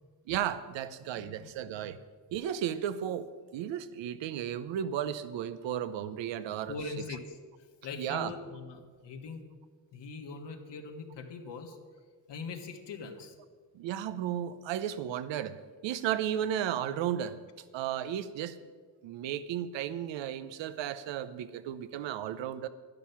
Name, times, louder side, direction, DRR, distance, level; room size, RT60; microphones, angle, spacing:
voice 1, 0.3-2.0 2.3-6.8 8.0-8.3 13.7-15.6 15.8-17.4 17.7-18.6 19.0-22.7, right 10 dB, 85° right, 14 dB, 0.8 m, -34 dB
voice 2, 1.1-1.5 6.7-7.4 7.8-9.5 9.9-11.8 12.3-13.3, left 4 dB, 70° left, 4 dB, 1.7 m, -41 dB
11.5 x 10.5 x 5.9 m, 1.5 s
cardioid pair, 85°, 44 cm